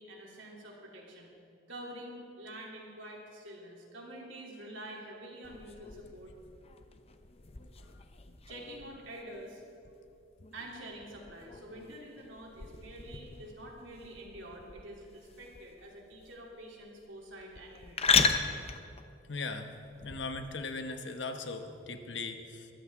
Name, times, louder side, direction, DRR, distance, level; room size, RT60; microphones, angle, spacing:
voice 1, 0.0-1.3 1.7-6.3 8.5-9.6 10.5-18.2, right 1 dB, 85° right, -2 dB, 3.2 m, -47 dB
sound 1, 5.4-20.5, left 5 dB, 30° left, 0.7 m, -36 dB
voice 2, 19.3-19.7 20.0-22.7, left 3 dB, 65° left, 7 dB, 1.1 m, -39 dB
21.5 x 14.0 x 3.7 m, 2.6 s
head